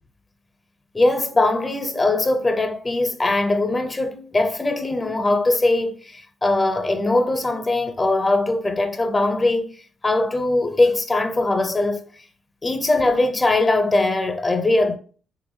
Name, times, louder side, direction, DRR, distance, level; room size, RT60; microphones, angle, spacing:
voice 1, 0.9-9.7 10.0-12.0 12.6-15.0, left 2 dB, 20° left, 0.6 m, -21 dB
3.6 x 2.5 x 3.1 m
cardioid pair, 90°, 0 cm